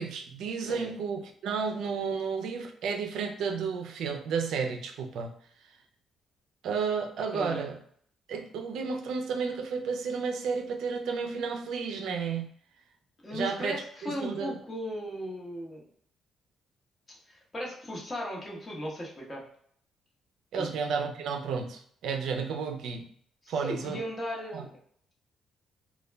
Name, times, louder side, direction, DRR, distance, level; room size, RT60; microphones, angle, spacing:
voice 1, 0.0-5.3 6.6-7.8 8.3-12.5 13.3-14.6 20.5-23.1 23.5-24.0 24.5-24.6, right 5 dB, 80° right, 5 dB, 0.4 m, -32 dB
voice 2, 0.6-0.9 7.3-7.7 13.2-15.9 17.3-19.4 20.5-20.7 23.4-24.7, equal, 30° left, -3 dB, 1.0 m, -37 dB
2.2 x 2.1 x 3.3 m, 0.62 s
cardioid pair, 90°, 0 cm